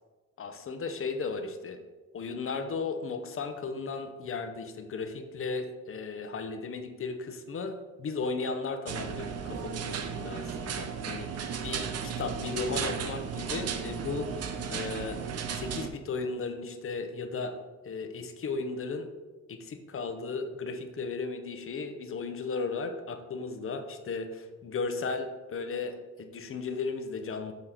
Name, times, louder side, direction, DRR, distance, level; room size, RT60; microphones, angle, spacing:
voice 1, 0.4-1.8 2.1-15.2 15.5-17.6 17.8-19.1 19.5-27.5, left 4 dB, 45° left, 7 dB, 0.8 m, -35 dB
sound 1, 8.9-15.9, right 7 dB, 55° right, 0.7 m, -35 dB
7.0 x 3.1 x 5.6 m, 1.2 s
cardioid pair, 90°, 30 cm